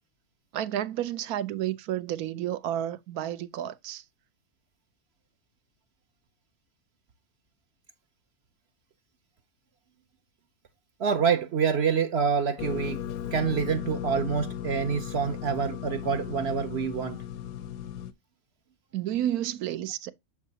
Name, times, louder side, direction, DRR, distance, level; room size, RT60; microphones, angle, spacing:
voice 1, 0.5-4.0 18.9-20.1, right 11 dB, 80° right, 1.1 m, -31 dB
voice 2, 11.0-13.0 13.3-17.2, right 6 dB, 60° right, 0.7 m, -27 dB
sound 1, 12.6-18.1, left 10 dB, 85° left, 1.2 m, -36 dB
7.2 x 4.9 x 2.7 m
omnidirectional pair, 1.5 m